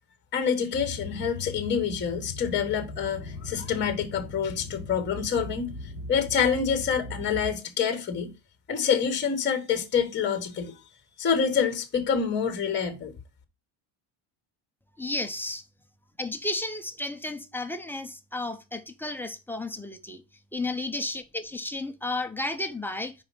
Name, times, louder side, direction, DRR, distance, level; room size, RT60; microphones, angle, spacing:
voice 1, 0.3-8.3 8.7-10.8 11.2-13.1, left 7 dB, 20° left, 1.2 m, -27 dB
sound 1, 0.7-7.5, left 2 dB, 40° right, 2.0 m, -39 dB
voice 2, 15.0-15.6 16.2-20.2 20.5-23.1, left 2 dB, 5° left, 0.4 m, -33 dB
5.2 x 4.8 x 5.4 m
cardioid pair, 160°, 48 cm